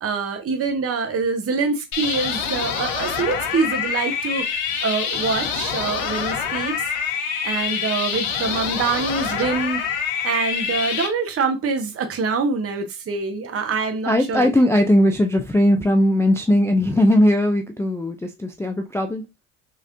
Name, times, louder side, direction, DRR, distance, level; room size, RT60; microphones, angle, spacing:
voice 1, 0.0-6.8 7.4-9.8 10.2-14.5, right 4 dB, 35° right, 0.8 m, -25 dB
sound 1, 1.9-11.1, left 7 dB, 90° left, 0.8 m, -26 dB
voice 2, 14.1-19.2, left 1 dB, 5° left, 0.3 m, -18 dB
3.1 x 2.9 x 2.5 m
supercardioid pair, 65°, 41 cm